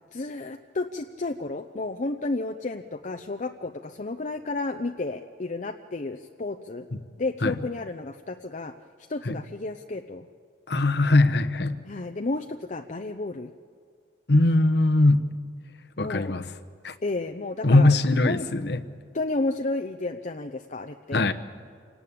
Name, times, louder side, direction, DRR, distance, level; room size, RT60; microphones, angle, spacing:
voice 1, 0.1-6.8 7.2-8.7 9.1-10.3 11.9-13.5 16.0-16.4 17.0-18.0 18.2-18.5 19.1-21.2, left 2 dB, 45° left, 5 dB, 0.7 m, -31 dB
voice 2, 10.7-11.8 14.3-15.2 16.0-16.5 16.8-16.9 17.6-18.8 21.1-21.3, left 2 dB, 65° left, 10 dB, 1.1 m, -20 dB
28.0 x 18.5 x 8.6 m, 2.2 s
head